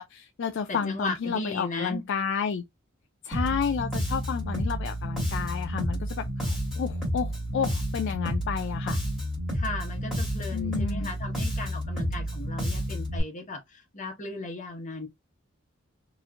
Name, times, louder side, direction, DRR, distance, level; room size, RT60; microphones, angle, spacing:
voice 1, 0.0-2.6 3.2-9.0 10.5-11.1, left 6 dB, 55° left, 0.3 m, -31 dB
voice 2, 0.7-2.1 9.5-15.1, left 2 dB, 35° left, 1.0 m, -36 dB
Bass guitar, 3.3-13.2, equal, ahead, 1.5 m, -30 dB
3.0 x 2.5 x 2.3 m
head